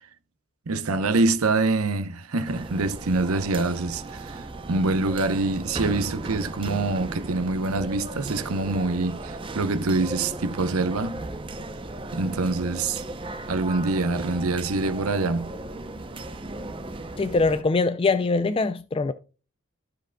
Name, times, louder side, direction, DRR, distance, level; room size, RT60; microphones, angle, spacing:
voice 1, 0.7-11.2 12.1-13.0 13.5-15.5, right 3 dB, 80° right, 0.8 m, -25 dB
sound 1, 2.4-17.6, right 2 dB, 25° right, 0.6 m, -36 dB
voice 2, 17.2-19.1, left 3 dB, 25° left, 0.3 m, -23 dB
14.5 x 5.0 x 2.2 m
head